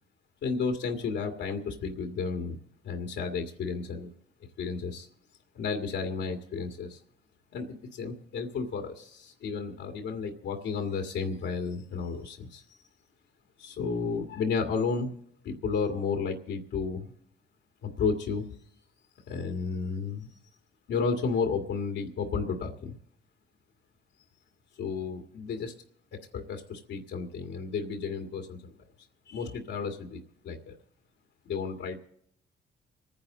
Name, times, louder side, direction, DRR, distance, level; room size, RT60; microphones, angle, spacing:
voice 1, 0.4-2.6 2.8-4.1 4.6-5.1 5.5-7.0 7.5-12.6 13.6-15.1 15.4-17.1 17.8-18.5 19.3-20.3 20.9-22.9 24.8-25.7 26.1-28.6 29.3-30.7 31.5-32.0, left 5 dB, 75° left, 2 dB, 2.0 m, -32 dB
25.5 x 10.5 x 3.9 m, 0.68 s
cardioid pair, 90°, 20 cm